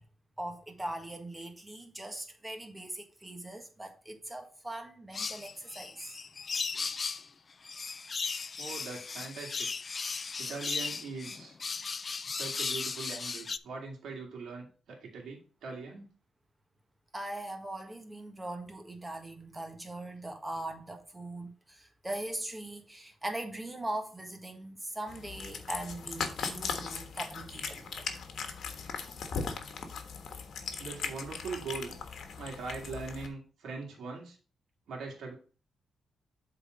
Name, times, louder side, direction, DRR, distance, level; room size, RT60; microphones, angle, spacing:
voice 1, 0.4-6.1 17.1-28.1, right 1 dB, 15° right, 1.4 m, -40 dB
sound 1, 5.1-7.3 7.6-13.6, left 5 dB, 35° left, 0.4 m, -36 dB
voice 2, 8.6-9.7 10.4-11.6 12.2-16.1 30.8-31.9 32.4-34.4 34.9-35.3, right 4 dB, 80° right, 2.0 m, -41 dB
Cat, 25.1-33.3, left 5 dB, 70° left, 1.3 m, -39 dB
7.7 x 4.0 x 5.1 m
cardioid pair, 115°, 0 cm